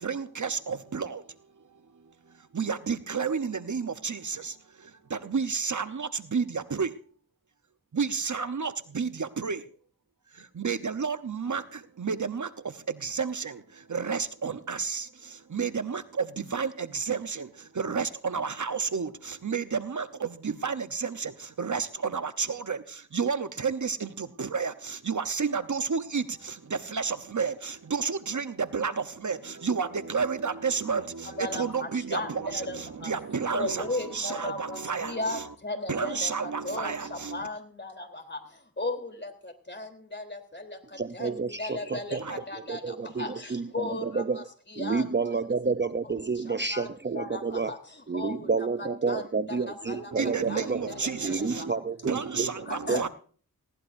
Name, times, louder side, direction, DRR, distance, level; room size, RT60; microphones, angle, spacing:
voice 1, 0.0-7.0 7.9-9.7 10.3-35.5 35.9-37.5 42.2-42.4 50.1-51.7 52.0-53.1, right 5 dB, 55° right, 0.9 m, -31 dB
voice 2, 31.2-45.4 46.0-46.9 47.1-51.7 52.0-52.1 52.6-53.1, left 2 dB, 30° left, 3.4 m, -37 dB
voice 3, 41.0-42.2 42.7-44.4 44.8-47.8 48.1-50.9 51.2-52.5 52.9-53.1, right 4 dB, 30° right, 0.6 m, -30 dB
19.5 x 17.0 x 2.6 m
cardioid pair, 45°, 35 cm